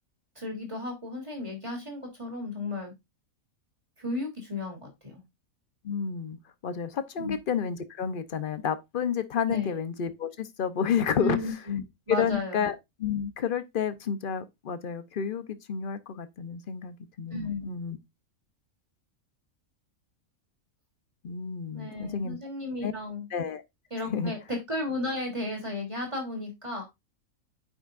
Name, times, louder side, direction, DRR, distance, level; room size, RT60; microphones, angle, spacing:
voice 1, 0.3-2.9 4.0-5.2 7.2-7.3 9.5-9.8 11.2-12.7 17.3-17.8 21.7-23.3 23.9-26.8, left 2 dB, 20° right, 3.0 m, -34 dB
voice 2, 5.8-6.4 6.6-11.4 12.1-18.0 21.2-22.4 22.8-22.9 23.3-23.6 24.1-24.3, left 7 dB, 45° left, 0.8 m, -30 dB
9.3 x 6.8 x 2.5 m
omnidirectional pair, 1.5 m